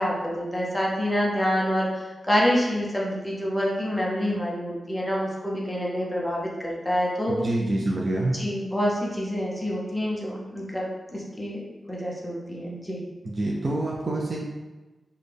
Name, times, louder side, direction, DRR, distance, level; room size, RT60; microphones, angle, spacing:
voice 1, 0.0-7.4 8.3-13.0, equal, 5° left, -4 dB, 0.6 m, -27 dB
voice 2, 7.3-8.4 13.2-14.4, right 2 dB, 45° right, -3 dB, 0.5 m, -26 dB
4.2 x 2.2 x 3.3 m, 1.2 s
wide cardioid pair, 110°, 0 cm